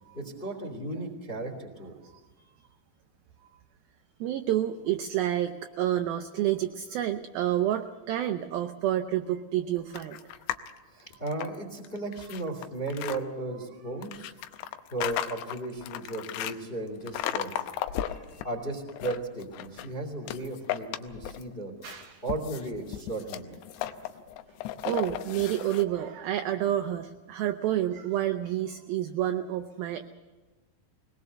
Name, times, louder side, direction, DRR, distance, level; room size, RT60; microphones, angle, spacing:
voice 1, 0.1-1.9 10.9-14.3 14.9-17.5 18.4-21.7 22.2-23.5, right 2 dB, 15° left, 5 dB, 2.0 m, -35 dB
voice 2, 4.2-10.2 17.9-18.5 21.8-22.2 23.8-23.9 24.8-30.1, right 12 dB, 85° right, 6 dB, 2.1 m, -29 dB
sound 1, 9.9-10.7 11.1-13.2 14.0-16.6 17.1-18.4 18.8-19.9 20.3-21.5 21.8-25.8, left 12 dB, 80° left, 2.9 m, -35 dB
21.5 x 19.5 x 6.8 m, 1.3 s
omnidirectional pair, 5.2 m